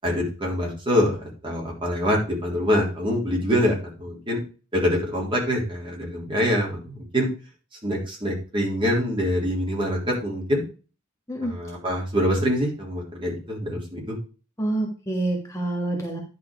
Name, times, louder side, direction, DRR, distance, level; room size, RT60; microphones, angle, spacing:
voice 1, 0.0-4.4 4.7-7.3 7.8-10.6 11.4-14.2, equal, 25° right, -2 dB, 3.4 m, -25 dB
voice 2, 14.6-16.2, right 2 dB, 15° left, 0 dB, 1.6 m, -27 dB
11.0 x 4.6 x 4.8 m, 0.34 s
head